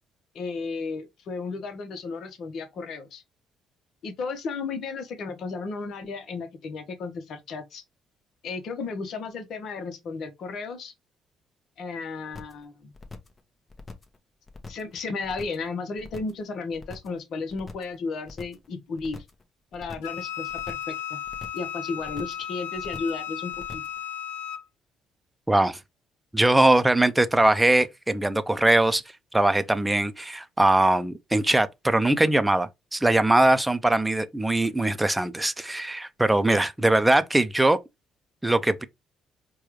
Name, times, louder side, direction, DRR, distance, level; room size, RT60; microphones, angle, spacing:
voice 1, 0.3-3.2 4.0-7.8 8.4-10.9 11.8-12.9 14.7-19.3 19.7-21.0 21.5-23.8, left 4 dB, 65° left, 0.8 m, -34 dB
sound 1, 12.3-12.6 12.9-13.4 13.7-14.2 14.5-14.9 15.2-15.7 16.0-16.4 16.7-17.2 17.5-18.0 18.3-18.7 19.0-19.4 19.7-20.2 20.5-21.0 21.2-21.7 22.0-22.5 22.7-23.2 23.5-24.0, left 3 dB, 30° left, 0.9 m, -43 dB
Wind instrument woodwind instrument, 20.0-24.6, left 10 dB, 80° left, 0.3 m, -35 dB
voice 2, 25.5-25.8 26.3-29.0 29.3-37.8 38.4-38.8, right 1 dB, 10° right, 0.5 m, -21 dB
4.6 x 2.3 x 3.1 m
hypercardioid pair, 55°, 0 cm